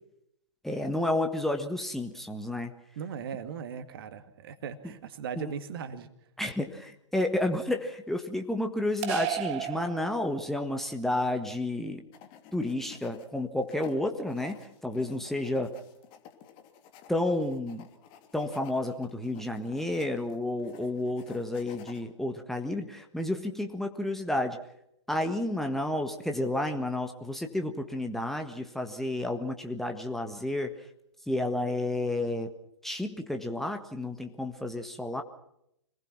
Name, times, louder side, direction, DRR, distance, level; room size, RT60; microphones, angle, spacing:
voice 1, 0.6-2.7 5.4-5.5 6.4-12.0 12.5-15.8 17.1-17.9 18.3-24.6 25.1-30.9 31.3-32.5 32.8-35.2, left 1 dB, ahead, 4 dB, 1.5 m, -31 dB
voice 2, 3.0-6.1, right 7 dB, 50° right, 10 dB, 2.1 m, -38 dB
sound 1, 9.0-10.7, right 13 dB, 35° right, 1.5 m, -34 dB
sound 2, 12.1-13.3 13.6-22.0, left 9 dB, 30° left, 2.9 m, -52 dB
26.5 x 19.5 x 6.0 m, 0.77 s
figure-of-eight pair, 110°, 16 cm